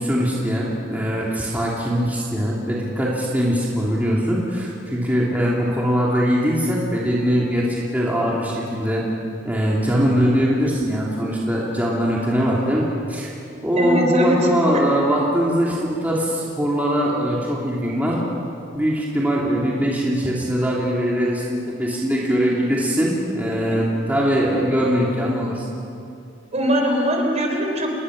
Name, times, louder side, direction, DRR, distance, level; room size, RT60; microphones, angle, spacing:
voice 1, 0.0-9.0 9.4-13.3 13.6-18.2 18.7-25.7, equal, 10° right, -5 dB, 2.9 m, -21 dB
voice 2, 13.8-14.4 14.7-14.8 23.7-23.8 26.5-27.9, equal, 35° right, 2 dB, 4.2 m, -21 dB
28.0 x 21.0 x 6.5 m, 2.5 s
head